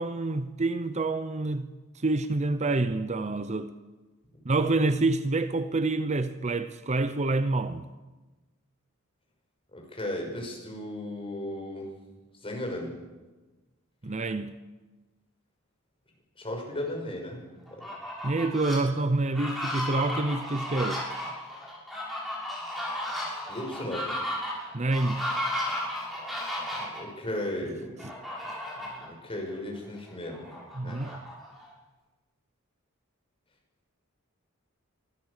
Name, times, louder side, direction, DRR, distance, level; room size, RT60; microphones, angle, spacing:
voice 1, 0.0-1.7 2.0-3.7 4.4-7.9 14.0-14.6 18.2-21.0 24.7-25.3 30.8-31.2, right 2 dB, 35° right, 0.7 m, -27 dB
voice 2, 9.7-11.9 12.4-12.9 16.4-17.4 23.5-24.1 26.7-28.1 28.9-30.4 30.8-31.0, left 1 dB, 25° left, 5.7 m, -35 dB
Fowl, 17.7-18.8 19.2-27.0 28.0-29.1 29.5-29.6 30.0-31.7, left 1 dB, ahead, 7.1 m, -34 dB
24.0 x 14.0 x 8.2 m
head